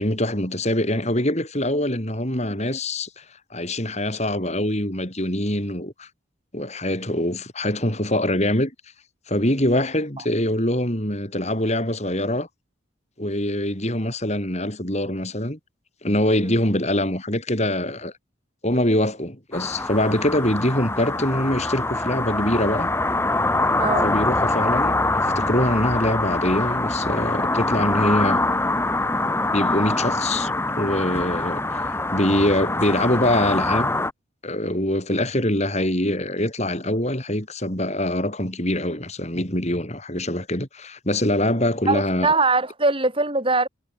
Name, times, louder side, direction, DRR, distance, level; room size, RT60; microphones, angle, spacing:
voice 1, 0.0-3.2 3.5-6.1 6.5-8.7 9.3-12.5 13.2-15.6 16.0-18.1 18.6-22.9 24.0-28.4 29.5-34.0 34.4-42.3, left 1 dB, 35° left, 6.6 m, -24 dB
sound 1, 19.5-34.1, left 2 dB, 10° left, 6.3 m, -24 dB
voice 2, 23.8-24.1 41.9-43.7, right 3 dB, 25° right, 7.7 m, -22 dB
head